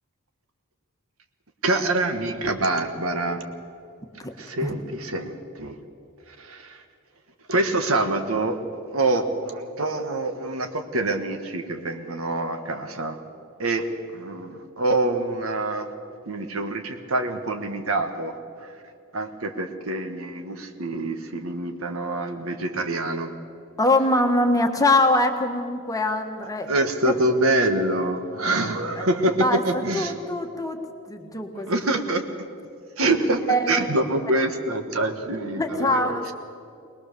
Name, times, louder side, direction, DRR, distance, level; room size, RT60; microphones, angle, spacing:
voice 1, 1.6-3.4 4.4-5.8 6.3-6.8 7.5-8.6 8.9-13.2 13.6-15.9 16.3-18.7 19.1-23.3 26.7-30.1 31.7-32.5 33.0-36.3, right 2 dB, 70° right, 7 dB, 1.5 m, -26 dB
voice 2, 23.8-26.7 29.0-29.1 29.4-30.8 31.1-31.8 33.5-33.9 35.6-36.3, left 1 dB, 15° left, 5 dB, 1.4 m, -23 dB
22.0 x 20.0 x 6.8 m, 2.4 s
head